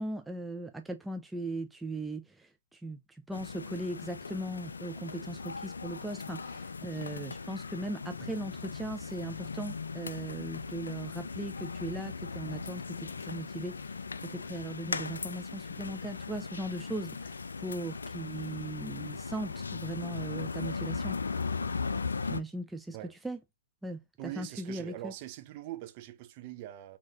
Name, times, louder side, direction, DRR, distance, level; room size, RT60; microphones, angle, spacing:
voice 1, 0.0-21.2 22.2-23.0 23.2-23.4 23.8-25.1, right 1 dB, 5° right, 0.4 m, -39 dB
sound 1, 3.3-22.4, left 4 dB, 75° left, 0.4 m, -38 dB
voice 2, 24.2-27.0, right 14 dB, 35° right, 0.8 m, -43 dB
6.2 x 2.8 x 2.9 m
figure-of-eight pair, 125°, 0 cm